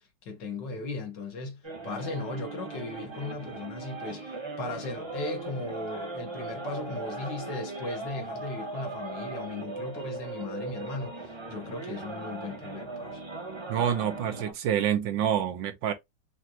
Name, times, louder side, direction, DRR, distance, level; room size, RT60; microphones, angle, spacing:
voice 1, 0.0-13.2, left 3 dB, 75° left, 1.9 m, -37 dB
sound 1, 1.6-14.5, right 3 dB, 20° right, 0.8 m, -38 dB
voice 2, 13.7-15.9, right 9 dB, 85° right, 1.6 m, -27 dB
5.5 x 2.5 x 2.9 m
omnidirectional pair, 2.0 m